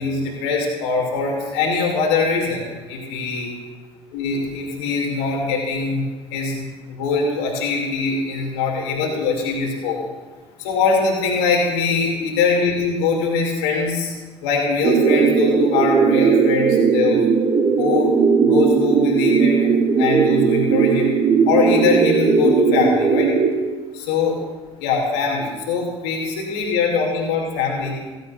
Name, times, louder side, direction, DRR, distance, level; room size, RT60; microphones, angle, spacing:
voice 1, 0.0-3.5 4.1-6.0 6.3-10.0 10.6-14.1 14.4-17.2 17.8-19.7 20.0-21.1 21.4-23.3 23.9-24.4 24.8-28.0, left 4 dB, 70° left, 0 dB, 2.7 m, -22 dB
sound 1, 14.8-23.5, right 6 dB, 35° right, 1.3 m, -17 dB
16.0 x 16.0 x 2.6 m, 1.3 s
figure-of-eight pair, 65°, 15 cm